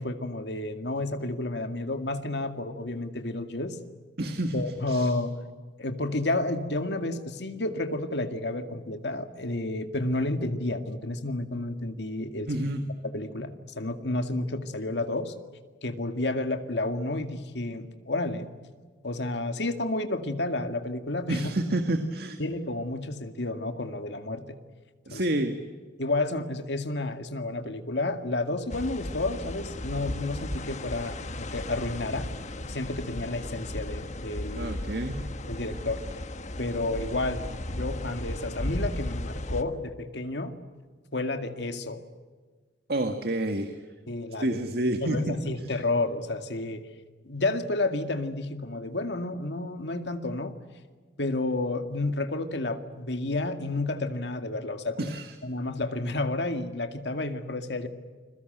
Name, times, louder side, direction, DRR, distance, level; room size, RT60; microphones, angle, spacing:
voice 1, 0.0-3.8 4.5-5.3 5.8-12.5 13.1-15.3 15.8-18.5 19.0-21.4 22.4-24.6 25.1-25.2 26.0-32.3 32.6-34.7 35.5-36.0 36.6-37.4 37.7-40.5 41.1-42.0 44.1-44.6 45.0-46.8 47.2-50.6 51.2-55.1 55.4-57.9, left 2 dB, 70° left, 7 dB, 2.2 m, -31 dB
voice 2, 4.2-5.1 12.5-12.8 21.3-22.4 25.1-25.6 34.6-35.2 42.9-43.8 44.4-45.4 55.0-55.3, right 1 dB, 60° right, 7 dB, 1.8 m, -29 dB
sound 1, 28.7-39.6, left 1 dB, 40° left, 1.4 m, -35 dB
29.5 x 22.0 x 8.0 m, 1.5 s
head